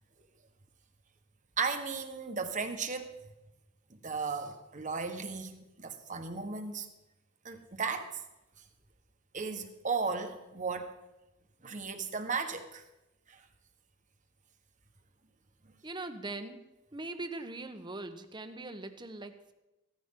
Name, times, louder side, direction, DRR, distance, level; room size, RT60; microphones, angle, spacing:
voice 1, 1.6-3.1 3.9-6.9 7.4-8.2 9.3-10.9 11.6-12.8 13.3-13.4, right 5 dB, 40° right, 6 dB, 1.3 m, -35 dB
voice 2, 15.8-16.6 16.9-19.5, right 2 dB, 20° right, 8 dB, 1.0 m, -41 dB
16.5 x 14.0 x 3.8 m, 0.97 s
head